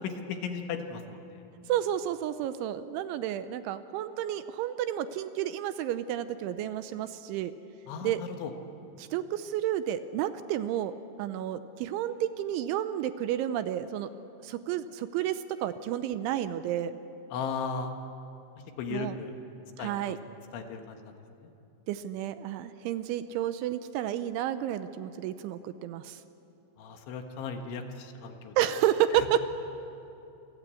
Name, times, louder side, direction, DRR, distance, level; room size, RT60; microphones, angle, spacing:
voice 1, 0.0-1.4 7.9-8.5 17.3-17.9 18.8-19.3 19.8-20.2 20.5-21.1 26.8-28.5 29.2-29.3, left 6 dB, 70° left, 5 dB, 3.8 m, -36 dB
voice 2, 1.7-7.5 8.0-8.2 9.0-10.9 11.2-14.1 14.4-17.0 18.9-19.2 19.8-20.2 21.9-26.2 28.6-29.4, right 11 dB, 80° right, 11 dB, 2.9 m, -31 dB
28.0 x 24.0 x 8.5 m, 2.8 s
omnidirectional pair, 5.8 m